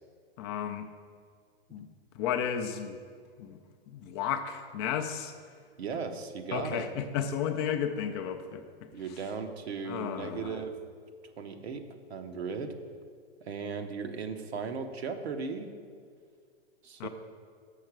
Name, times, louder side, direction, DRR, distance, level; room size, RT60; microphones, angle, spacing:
voice 1, 0.4-0.9 1.7-1.9 2.1-3.0 3.4-3.6 3.9-5.3 6.5-8.6 9.9-10.6 17.0-17.1, left 8 dB, 25° left, 6 dB, 0.4 m, -33 dB
voice 2, 5.8-6.9 8.9-10.8 11.4-12.7 13.4-15.7 16.8-17.1, right 5 dB, 85° right, 6 dB, 1.0 m, -37 dB
6.6 x 6.4 x 6.0 m, 2.1 s
hypercardioid pair, 140°, 31 cm